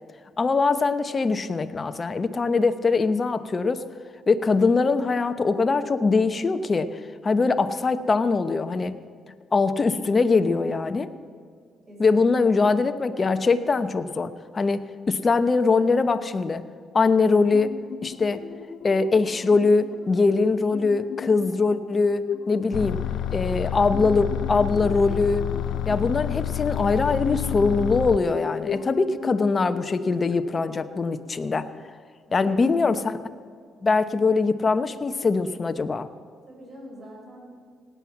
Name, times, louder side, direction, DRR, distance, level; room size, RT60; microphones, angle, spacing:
voice 1, 0.4-3.9 4.3-8.9 9.5-11.1 12.0-14.8 15.1-16.6 16.9-17.7 18.0-18.4 18.8-23.0 23.3-25.5 25.9-31.7 32.3-33.2 33.8-36.1, left 4 dB, 35° left, 10 dB, 0.9 m, -22 dB
voice 2, 11.9-12.6 32.3-32.6 36.5-37.6, right 1 dB, 35° right, -1 dB, 4.9 m, -44 dB
sound 1, 17.5-31.9, left 7 dB, 65° left, 1.0 m, -38 dB
sound 2, 22.7-28.2, left 11 dB, 80° left, 0.5 m, -29 dB
17.5 x 9.4 x 7.3 m, 2.1 s
cardioid pair, 90°, 0 cm